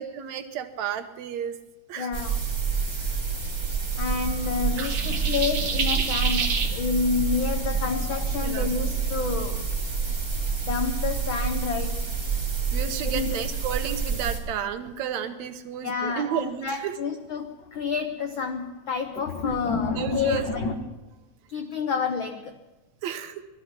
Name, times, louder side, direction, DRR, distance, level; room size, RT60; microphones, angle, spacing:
voice 1, 0.0-1.6 1.9-2.1 8.4-8.7 12.7-16.9 20.0-20.5 23.0-23.4, right 9 dB, 75° right, 7 dB, 2.2 m, -32 dB
voice 2, 2.0-2.4 4.0-9.7 10.6-12.1 13.0-13.4 15.8-20.4 21.5-22.6, left 6 dB, 80° left, 6 dB, 1.1 m, -29 dB
sound 1, 2.1-14.4, right 5 dB, 10° right, 2.2 m, -28 dB
sound 2, 4.1-10.9 11.2-12.1 13.8-14.1 14.7-14.8 15.7-15.8 16.2-16.7 17.1-20.8, left 3 dB, 50° left, 1.5 m, -36 dB
sound 3, 4.8-6.7, right 5 dB, 50° right, 1.8 m, -28 dB
19.0 x 13.0 x 6.0 m, 1.1 s
omnidirectional pair, 3.3 m